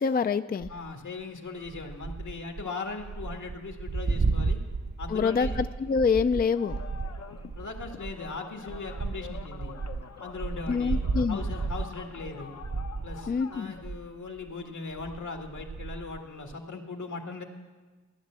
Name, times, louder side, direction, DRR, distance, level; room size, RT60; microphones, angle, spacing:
voice 1, 0.0-0.7 5.1-6.8 10.7-11.4 13.3-13.7, left 5 dB, 30° left, 11 dB, 0.4 m, -26 dB
sound 1, 0.6-0.9 1.6-14.1 14.4-14.6 14.9-16.5, right 4 dB, 35° right, 0.6 m, -33 dB
voice 2, 0.7-4.6 5.0-5.6 7.6-9.8 10.2-12.5 13.0-17.4, left 4 dB, 80° left, 3 dB, 1.9 m, -39 dB
sound 2, 6.5-13.8, left 7 dB, 60° left, 0.8 m, -46 dB
14.5 x 10.5 x 7.5 m, 1.4 s
wide cardioid pair, 70°, 30 cm